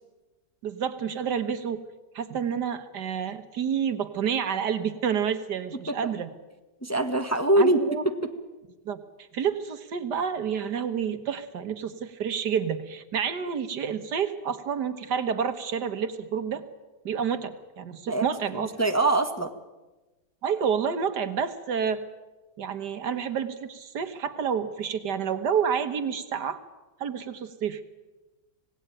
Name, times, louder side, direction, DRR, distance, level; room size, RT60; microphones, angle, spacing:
voice 1, 0.6-1.8 2.1-6.3 7.6-8.0 8.9-9.0 9.3-16.6 17.1-18.8 20.4-22.0 22.6-26.6 27.0-27.8, right 7 dB, 70° right, 10 dB, 1.9 m, -29 dB
voice 2, 6.8-8.3 18.1-18.2 18.8-19.5, right 2 dB, 10° left, 6 dB, 1.3 m, -23 dB
26.5 x 18.0 x 9.0 m, 1.1 s
omnidirectional pair, 1.9 m